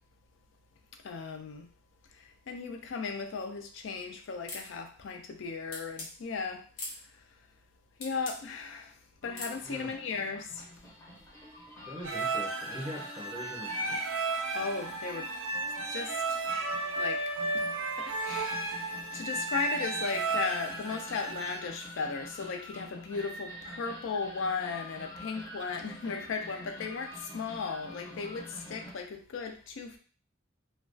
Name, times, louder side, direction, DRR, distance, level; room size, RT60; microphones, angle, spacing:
voice 1, 1.0-1.7 2.2-6.6 8.0-8.9 9.2-10.7 14.5-15.3 15.9-16.4 17.0-17.2 17.5-30.0, left 4 dB, 70° left, 5 dB, 0.4 m, -36 dB
sound 1, 4.5-4.7 5.7-6.1 6.8-7.0 8.0-8.4 9.3-9.6, left 2 dB, 90° left, 0.7 m, -40 dB
sound 2, 9.2-28.9, left 1 dB, 15° left, 0.5 m, -47 dB
voice 2, 11.8-14.1, equal, 25° right, -1 dB, 0.6 m, -42 dB
sound 3, 12.0-21.6, right 3 dB, 85° right, 0.4 m, -33 dB
2.2 x 2.2 x 2.5 m, 0.40 s
head